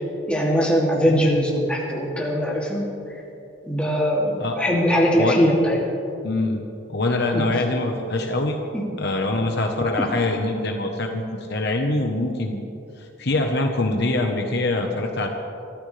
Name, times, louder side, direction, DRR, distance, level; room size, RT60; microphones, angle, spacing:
voice 1, 0.3-2.8 3.6-5.8 7.3-7.5, equal, 5° left, -4 dB, 2.7 m, -21 dB
voice 2, 6.2-6.6 6.9-8.6 9.0-11.2 11.5-12.7 13.2-15.3, left 2 dB, 55° left, 3 dB, 1.1 m, -23 dB
25.0 x 14.0 x 3.4 m, 2.7 s
head